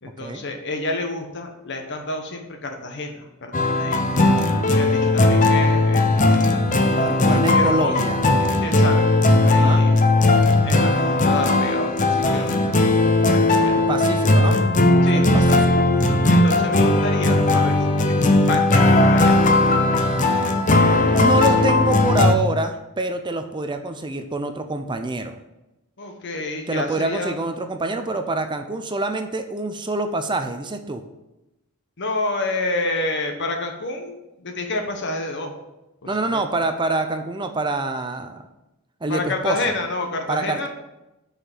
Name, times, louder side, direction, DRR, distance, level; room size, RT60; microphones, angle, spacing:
voice 1, 0.0-4.3 4.7-6.6 7.0-8.0 8.6-10.0 10.6-12.7 13.2-13.9 15.0-15.6 16.3-19.4 26.0-27.4 32.0-35.5 36.0-36.4 39.1-40.7, left 2 dB, 55° left, 4 dB, 1.3 m, -29 dB
sound 1, 3.5-22.3, left 2 dB, 35° left, 0.8 m, -17 dB
voice 2, 7.0-8.2 9.4-9.8 13.9-14.6 15.1-15.4 15.9-16.2 21.1-25.3 26.7-31.0 36.1-38.5 39.0-39.7 40.3-40.7, right 2 dB, 20° right, 7 dB, 0.6 m, -26 dB
6.9 x 5.7 x 7.4 m, 0.96 s
head